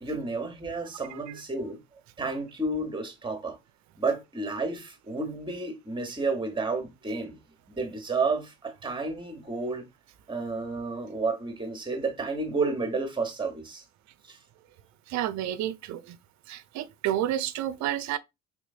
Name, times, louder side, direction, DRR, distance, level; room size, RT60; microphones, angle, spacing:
voice 1, 0.0-1.8 2.2-3.5 4.0-7.3 7.7-9.8 10.3-13.8, right 3 dB, 10° right, 1.1 m, -31 dB
voice 2, 1.1-1.4 15.1-16.2 16.5-18.2, right 12 dB, 50° right, 0.5 m, -30 dB
3.5 x 3.0 x 2.4 m
hypercardioid pair, 65°, 38 cm